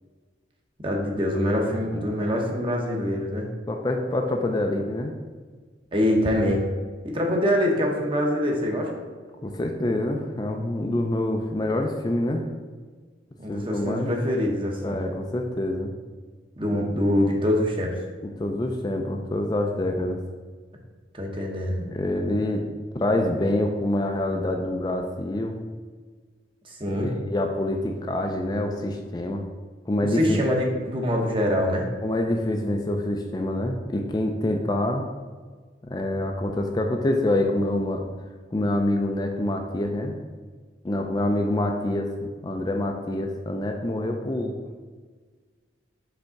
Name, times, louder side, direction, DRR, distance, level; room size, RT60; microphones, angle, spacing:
voice 1, 0.8-3.5 5.9-6.7 7.0-9.0 13.4-15.0 16.6-18.0 21.1-21.9 26.6-27.2 30.2-31.9, left 1 dB, 30° right, 0 dB, 1.0 m, -24 dB
voice 2, 3.7-5.1 9.4-12.4 13.5-14.1 14.8-15.9 18.4-20.2 21.9-22.6 22.9-25.7 26.9-29.4 29.9-30.4 32.0-35.0 35.8-38.1 38.5-40.2 40.8-42.1 42.4-44.5, left 1 dB, 20° left, 2 dB, 0.4 m, -26 dB
5.2 x 3.6 x 5.7 m, 1.5 s
head